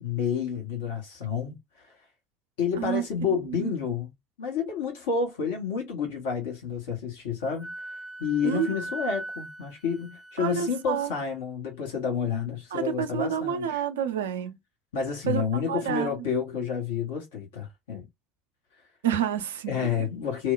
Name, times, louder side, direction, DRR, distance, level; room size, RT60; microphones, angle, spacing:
voice 1, 0.0-1.9 2.6-4.1 4.4-7.7 8.2-13.8 14.9-18.0 19.7-20.5, left 6 dB, 70° left, 0.9 m, -30 dB
voice 2, 2.8-3.7 8.4-8.7 10.4-11.1 12.7-14.6 15.3-15.4 15.7-16.1 19.0-20.1, right 9 dB, 70° right, 0.4 m, -29 dB
Wind instrument woodwind instrument, 7.6-11.0, right 2 dB, ahead, 0.7 m, -40 dB
4.3 x 2.1 x 2.3 m
figure-of-eight pair, 60°, 0 cm